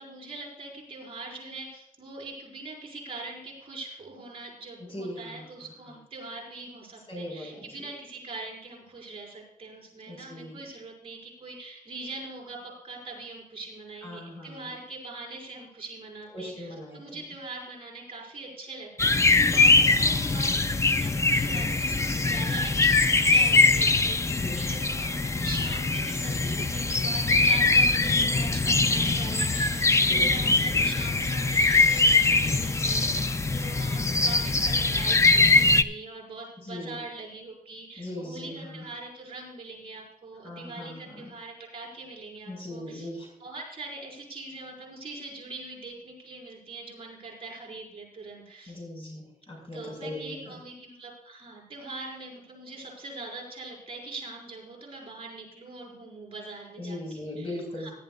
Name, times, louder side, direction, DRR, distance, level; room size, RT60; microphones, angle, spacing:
voice 1, 0.0-43.1 43.4-48.8 49.7-57.5 57.8-57.9, right 3 dB, 40° right, -3 dB, 5.2 m, -42 dB
voice 2, 4.8-6.0 7.1-7.7 10.1-10.6 14.0-14.7 16.3-17.2 24.3-24.5 27.8-27.9 30.1-30.3 36.6-37.0 38.0-38.9 40.4-41.3 42.5-43.3 48.7-50.5 56.8-57.9, left 1 dB, 40° left, 0 dB, 5.1 m, -39 dB
sound 1, 19.0-35.8, left 3 dB, 20° left, 0.4 m, -22 dB
18.5 x 12.0 x 2.4 m, 0.78 s
wide cardioid pair, 175°, 14 cm